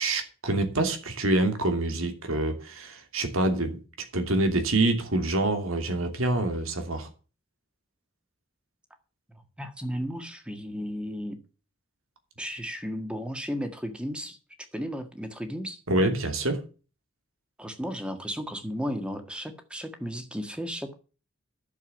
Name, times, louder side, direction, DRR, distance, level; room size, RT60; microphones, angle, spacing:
voice 1, 0.0-3.8 4.1-7.1 15.9-16.6, right 2 dB, 90° right, 2.8 m, -26 dB
voice 2, 9.6-11.4 12.4-14.4 14.7-15.8 17.6-20.9, equal, 5° right, 1.7 m, -34 dB
11.0 x 7.3 x 7.2 m
head